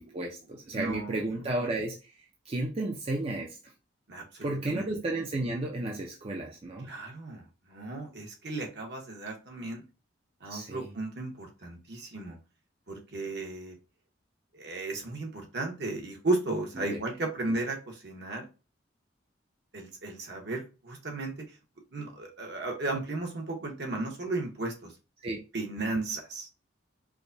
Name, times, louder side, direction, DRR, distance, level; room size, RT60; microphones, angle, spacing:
voice 1, 0.0-2.1 2.5-3.6 4.4-6.9 10.5-10.9 16.8-17.0 25.2-25.4, right 2 dB, 30° right, 0 dB, 0.5 m, -33 dB
voice 2, 0.7-1.4 4.1-4.9 6.8-9.8 10.4-12.4 12.9-13.8 14.5-18.5 19.7-21.6 21.9-24.9 25.5-26.5, right 2 dB, 60° right, 2 dB, 1.0 m, -35 dB
4.7 x 2.1 x 2.6 m, 0.31 s
head